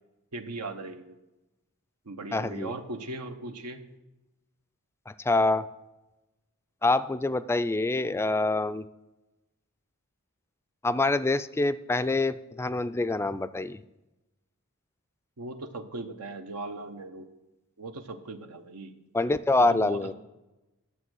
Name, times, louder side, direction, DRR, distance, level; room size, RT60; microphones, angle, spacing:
voice 1, 0.3-1.2 2.1-3.8 15.4-17.3 17.8-18.9 19.6-20.1, right 2 dB, 90° right, 5 dB, 0.9 m, -38 dB
voice 2, 2.3-2.7 5.1-5.7 6.8-8.8 10.8-13.8 19.1-20.1, left 2 dB, 10° left, 13 dB, 0.3 m, -26 dB
11.0 x 7.3 x 6.3 m, 1.0 s
head